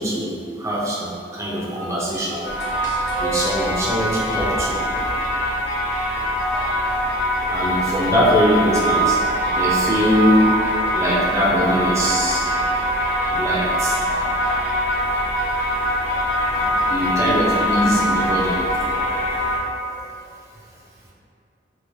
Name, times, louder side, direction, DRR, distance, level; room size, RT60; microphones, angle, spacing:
voice 1, 0.0-2.5 2.8-5.0 7.5-9.2 9.5-10.5 10.9-12.5 13.3-14.0 15.0-15.5 16.1-16.2 16.5-18.7 19.9-20.0, equal, 15° right, -5 dB, 0.4 m, -22 dB
sound 1, 2.4-19.6, equal, 65° left, 0.6 m, -22 dB
4.4 x 2.0 x 2.6 m, 2.5 s
head